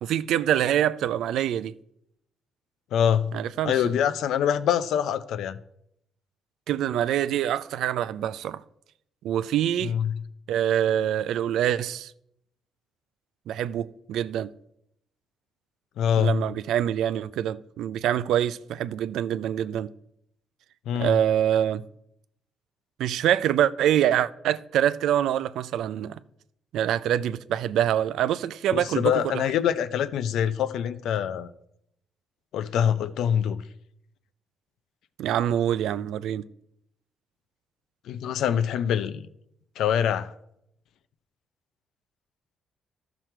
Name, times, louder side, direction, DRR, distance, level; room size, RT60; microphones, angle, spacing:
voice 1, 0.0-1.7 3.3-3.9 6.7-8.6 9.2-9.9 10.5-12.1 13.5-14.5 16.2-19.9 21.0-21.8 23.0-26.2 26.7-29.4 35.2-36.4, right 10 dB, 80° right, 0.4 m, -25 dB
voice 2, 2.9-3.3 3.6-5.6 9.8-10.2 16.0-16.4 20.9-21.2 28.7-31.5 32.5-33.6 38.1-39.3 39.8-40.3, left 9 dB, 80° left, 0.6 m, -24 dB
12.5 x 6.1 x 4.4 m
cardioid pair, 90°, 0 cm